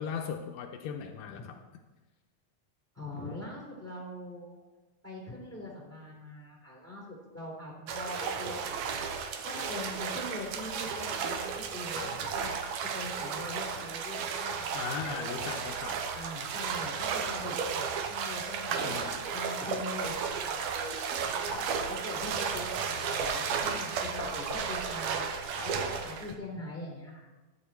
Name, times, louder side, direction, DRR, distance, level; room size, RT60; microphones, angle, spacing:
voice 1, 0.0-1.6 12.0-12.2 14.7-16.1 18.8-19.2 21.4-21.7 23.6-23.9 25.5-25.8, left 7 dB, 80° left, 4 dB, 2.2 m, -39 dB
voice 2, 2.9-4.6 5.0-8.9 9.4-12.5 12.9-15.6 16.1-19.0 19.3-21.6 21.9-25.3 25.6-27.3, left 1 dB, 5° left, -3 dB, 2.9 m, -42 dB
sound 1, 7.9-26.3, right 6 dB, 80° right, 1.6 m, -34 dB
sound 2, 20.3-25.7, left 1 dB, 25° right, 3.1 m, -45 dB
12.5 x 8.6 x 4.3 m, 1.2 s
omnidirectional pair, 4.2 m